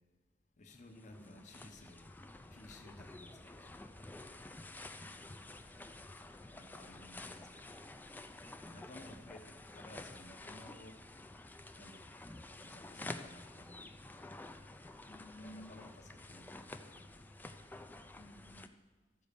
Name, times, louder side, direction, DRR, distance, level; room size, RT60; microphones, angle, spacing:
voice 1, 0.6-2.1 2.5-3.9 6.5-8.0 8.7-11.0 11.8-12.3 12.6-13.9 15.3-17.2, left 1 dB, 40° left, 5 dB, 1.0 m, -57 dB
sound 1, 0.7-18.7, left 2 dB, 10° left, 0.4 m, -50 dB
voice 2, 1.2-1.5 5.0-5.5 15.1-15.8 18.2-18.7, left 1 dB, 55° left, 0 dB, 0.7 m, -55 dB
12.5 x 5.1 x 6.8 m, 1.3 s
head